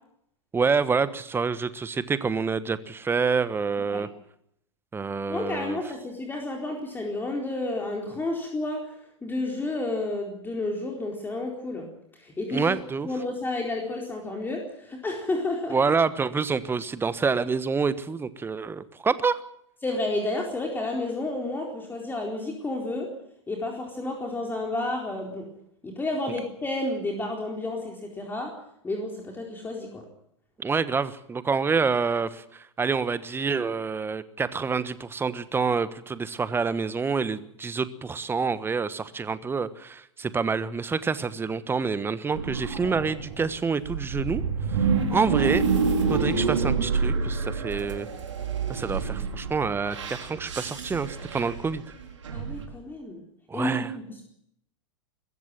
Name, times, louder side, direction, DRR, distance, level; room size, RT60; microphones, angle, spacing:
voice 1, 0.5-4.1 4.9-5.8 12.5-13.1 15.7-19.4 30.6-44.4 44.8-45.7 46.1-48.1 48.7-51.8 53.5-53.9, right 5 dB, 15° right, 15 dB, 1.3 m, -27 dB
voice 2, 5.3-8.9 9.2-11.9 12.1-12.8 13.0-15.8 19.8-23.1 23.5-25.5 25.8-28.5 28.8-30.0 52.3-53.2 53.5-54.2, left 2 dB, 15° left, 1 dB, 4.1 m, -31 dB
sound 1, 42.3-52.7, right 5 dB, 75° right, 4.1 m, -28 dB
21.5 x 15.0 x 9.0 m, 0.74 s
hypercardioid pair, 100°, 16 cm